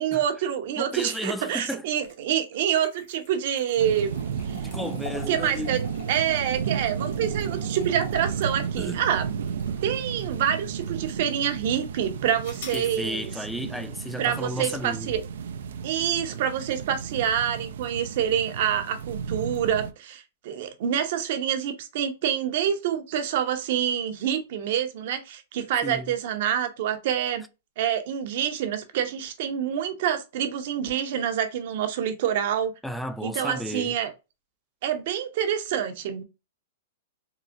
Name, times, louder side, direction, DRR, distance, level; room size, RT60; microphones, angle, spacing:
voice 1, 0.0-4.2 4.5-4.6 5.3-5.8 6.1-9.3 9.8-13.3 14.2-15.2 15.8-27.4 27.8-32.7 33.2-34.1 34.8-36.2, right 9 dB, 60° right, 0.8 m, -27 dB
voice 2, 0.8-1.8 4.5-5.8 8.8-9.0 12.7-15.2 25.8-26.1 32.8-33.9, equal, ahead, 0.3 m, -33 dB
sound 1, 1.9-10.4 10.9-11.0 12.4-12.9, left 6 dB, 60° left, 1.5 m, -45 dB
sound 2, 3.8-19.9, right 7 dB, 75° right, 0.4 m, -33 dB
3.9 x 2.1 x 2.5 m
hypercardioid pair, 135°, 0 cm